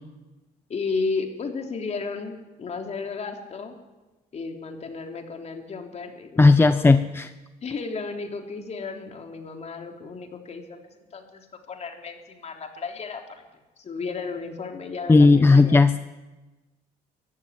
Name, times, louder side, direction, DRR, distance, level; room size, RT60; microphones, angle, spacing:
voice 1, 0.7-3.8 4.3-7.0 7.6-13.4 13.8-15.8, left 4 dB, 40° left, 4 dB, 3.5 m, -33 dB
voice 2, 6.4-7.3 15.1-16.0, left 3 dB, 15° left, 12 dB, 0.6 m, -15 dB
22.5 x 14.5 x 9.7 m, 1.2 s
cardioid pair, 110°, 17 cm